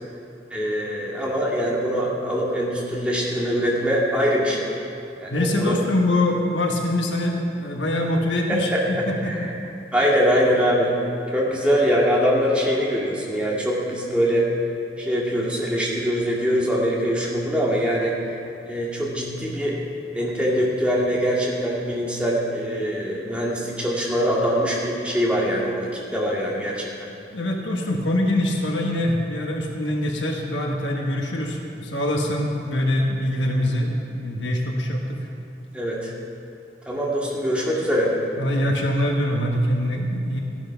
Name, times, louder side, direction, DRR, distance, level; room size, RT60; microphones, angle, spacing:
voice 1, 0.5-4.7 5.2-5.8 8.5-9.5 9.9-10.9 11.3-14.5 15.0-18.1 18.6-19.8 20.1-26.9 35.7-36.1 36.9-38.1, equal, 5° right, -5 dB, 2.1 m, -23 dB
voice 2, 5.3-9.3 27.3-35.3 38.4-40.4, left 1 dB, 90° left, 1 dB, 1.5 m, -24 dB
15.0 x 10.5 x 5.8 m, 2.6 s
head